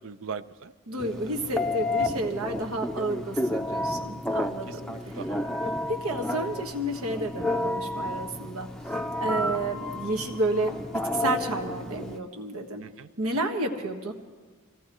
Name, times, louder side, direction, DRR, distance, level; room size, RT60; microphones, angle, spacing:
voice 1, 0.0-1.4 4.7-5.5 12.8-13.1, right 5 dB, 65° right, 14 dB, 0.5 m, -41 dB
voice 2, 0.9-5.2 5.6-8.7 9.2-12.8 13.2-14.1, right 2 dB, 90° right, 4 dB, 1.5 m, -31 dB
Telephone, 1.0-12.2, left 1 dB, 5° left, 0.5 m, -31 dB
25.0 x 16.5 x 3.1 m, 1.4 s
head